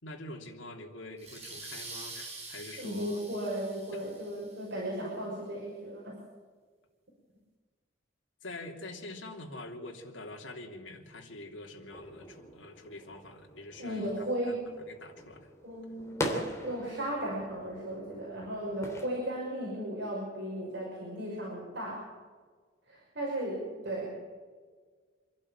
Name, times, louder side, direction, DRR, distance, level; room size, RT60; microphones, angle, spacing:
voice 1, 0.0-3.2 3.9-4.0 8.4-14.1 14.5-14.6 14.9-15.5, left 2 dB, 75° left, 2 dB, 3.0 m, -45 dB
sound 1, 1.2-4.6, right 3 dB, 35° right, 5.6 m, -45 dB
voice 2, 2.8-6.1 13.8-14.7 15.6-22.0 22.9-24.1, right 1 dB, 65° right, -4 dB, 5.9 m, -36 dB
sound 2, 11.9-19.1, equal, 15° left, 3.2 m, -41 dB
26.5 x 11.5 x 8.8 m, 1.6 s
head